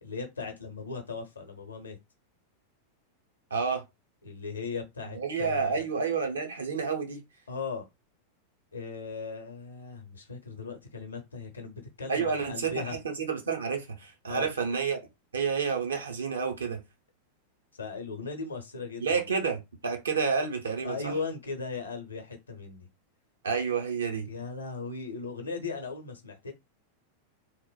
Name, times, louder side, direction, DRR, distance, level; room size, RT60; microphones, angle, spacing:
voice 1, 0.0-2.0 4.2-5.9 7.5-7.8 8.7-13.0 14.3-14.5 17.7-19.3 20.8-22.9 24.3-26.5, left 4 dB, 75° left, 0.7 m, -38 dB
voice 2, 3.5-3.8 5.1-7.2 12.1-15.0 15.3-16.8 19.0-21.1 23.4-24.3, right 5 dB, 70° right, 0.6 m, -30 dB
2.8 x 2.1 x 2.3 m
figure-of-eight pair, 90°, 0 cm